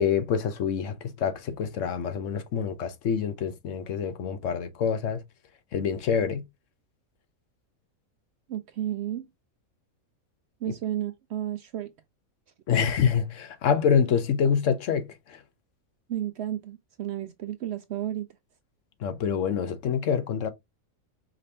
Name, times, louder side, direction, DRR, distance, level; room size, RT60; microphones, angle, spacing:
voice 1, 0.0-5.2 5.7-6.5 10.7-10.8 12.7-15.4 19.0-20.5, left 7 dB, 65° left, 1.0 m, -26 dB
voice 2, 8.5-9.3 10.6-11.9 16.1-18.3, right 11 dB, 65° right, 0.7 m, -32 dB
5.0 x 3.3 x 2.7 m
omnidirectional pair, 1.5 m